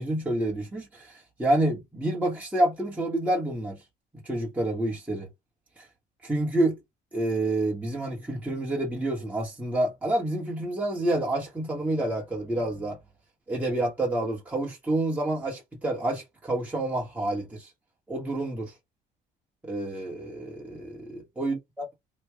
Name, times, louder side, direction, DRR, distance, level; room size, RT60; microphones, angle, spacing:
voice 1, 0.0-3.8 4.2-5.3 5.8-5.9 6.2-6.8 7.1-13.0 13.5-17.7 18.1-18.7 19.6-21.9, right 1 dB, 10° right, 1.3 m, -28 dB
3.1 x 2.5 x 3.5 m
cardioid pair, 110°, 17 cm